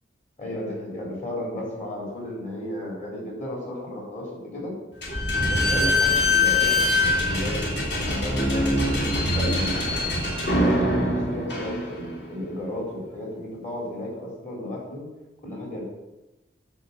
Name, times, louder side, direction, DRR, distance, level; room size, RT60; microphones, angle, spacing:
voice 1, 0.4-4.7 5.5-9.8 10.4-15.1 15.4-15.8, left 1 dB, 45° left, -3 dB, 3.8 m, -34 dB
Slam / Squeak, 5.0-12.3, left 2 dB, 65° left, 2.9 m, -23 dB
9.3 x 4.9 x 6.9 m, 1.0 s
head